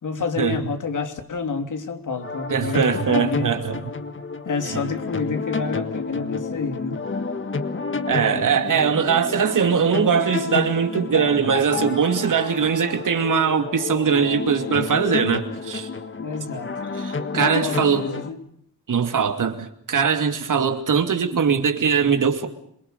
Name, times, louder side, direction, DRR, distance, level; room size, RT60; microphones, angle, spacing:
voice 1, 0.0-3.6 4.4-7.0 16.2-16.7 17.3-18.4, left 4 dB, 55° left, 3.3 m, -29 dB
sound 1, 2.2-18.3, left 4 dB, 35° left, 1.8 m, -30 dB
voice 2, 2.5-3.9 4.7-4.8 8.1-15.9 16.9-18.1 18.9-22.5, right 6 dB, 60° right, 2.7 m, -21 dB
27.0 x 23.0 x 6.7 m
wide cardioid pair, 130°, 36 cm